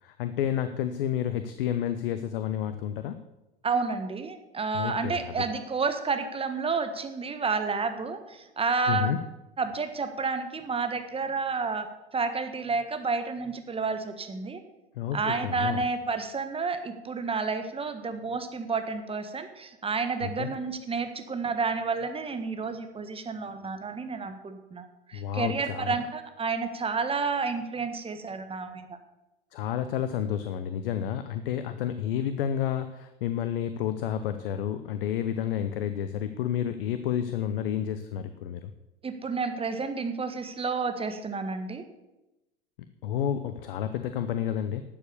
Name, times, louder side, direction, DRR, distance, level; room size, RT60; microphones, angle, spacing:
voice 1, 0.0-3.2 4.7-5.3 8.9-9.2 15.0-15.8 20.2-20.5 25.1-26.0 29.5-38.7 43.0-44.8, left 10 dB, 70° left, 11 dB, 0.8 m, -30 dB
voice 2, 3.6-9.1 9.6-11.9 12.1-14.6 15.1-29.0 39.0-41.8, right 4 dB, 20° right, 8 dB, 1.4 m, -30 dB
11.5 x 7.3 x 6.9 m, 0.98 s
hypercardioid pair, 80°, 29 cm